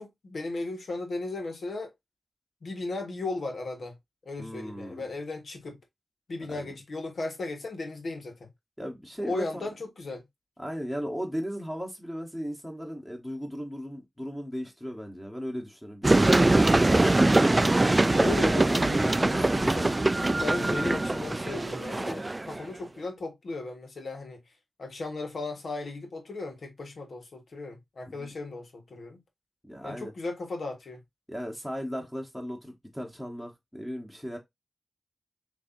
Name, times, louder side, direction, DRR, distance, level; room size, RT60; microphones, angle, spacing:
voice 1, 0.0-1.9 2.6-3.9 4.2-5.8 6.3-8.5 9.2-10.2 18.2-20.0 20.4-24.4 24.8-29.2 29.8-31.0, left 3 dB, 80° left, 1.3 m, -36 dB
voice 2, 4.4-5.0 6.5-6.7 8.8-9.7 10.6-17.3 28.1-28.3 29.6-30.1 31.3-34.4, equal, 5° left, 1.2 m, -37 dB
sound 1, 16.0-22.6, right 2 dB, 30° right, 0.3 m, -23 dB
6.4 x 2.7 x 2.7 m
cardioid pair, 60°, 0 cm